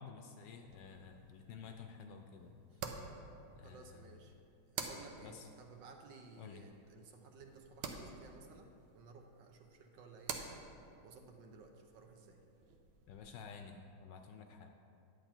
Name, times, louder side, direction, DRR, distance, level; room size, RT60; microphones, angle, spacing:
voice 1, 0.0-2.6 3.5-4.0 5.2-5.5 6.4-6.7 13.1-14.7, left 6 dB, 75° left, 5 dB, 1.1 m, -52 dB
sound 1, 0.7-13.5, right 6 dB, 85° right, 1.6 m, -50 dB
voice 2, 3.6-4.3 4.7-10.6 11.0-12.4, right 4 dB, 70° right, 3 dB, 1.3 m, -57 dB
9.8 x 8.1 x 4.3 m, 2.5 s
omnidirectional pair, 2.2 m